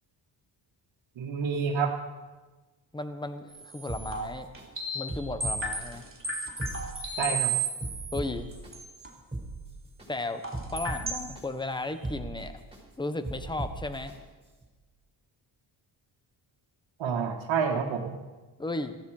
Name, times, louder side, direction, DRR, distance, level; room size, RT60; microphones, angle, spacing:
voice 1, 1.2-1.9 7.2-7.5 17.0-18.2, right 6 dB, 70° right, -3 dB, 1.9 m, -28 dB
voice 2, 2.9-4.5 4.9-6.1 8.1-8.5 10.1-10.4 10.7-12.6 13.0-14.1 18.6-19.0, left 2 dB, 10° left, 9 dB, 1.3 m, -34 dB
sound 1, 3.5-5.1 5.4-8.2 8.5-9.1 10.4-11.3 11.6-11.7, right 3 dB, 25° right, 3.4 m, -33 dB
sound 2, 3.9-4.6 5.1-6.0 6.5-7.4 7.8-8.7 9.2-10.1 10.5-11.4 11.9-12.8 13.2-14.1 14.6-14.7, right 2 dB, 10° right, 6.6 m, -38 dB
18.0 x 14.5 x 5.0 m, 1.3 s
cardioid pair, 75°, 46 cm